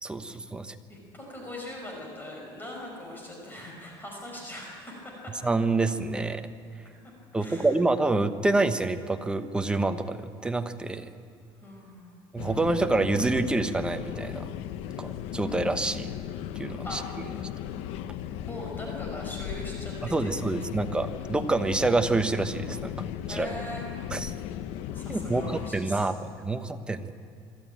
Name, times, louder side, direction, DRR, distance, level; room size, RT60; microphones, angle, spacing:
voice 1, 0.0-0.8 5.4-6.4 7.3-11.1 12.3-14.5 15.0-16.1 16.6-17.0 20.1-22.9 23.3-23.5 24.1-24.3 25.1-27.1, right 2 dB, 10° right, 8 dB, 1.0 m, -27 dB
voice 2, 0.9-5.4 7.3-7.7 11.6-12.2 16.8-17.3 18.5-20.3 23.3-23.9 24.9-26.2, left 1 dB, 20° left, -1 dB, 5.1 m, -41 dB
sound 1, 12.4-25.7, left 10 dB, 75° left, 0.9 m, -36 dB
24.5 x 13.5 x 8.9 m, 2.6 s
cardioid pair, 125°, 10 cm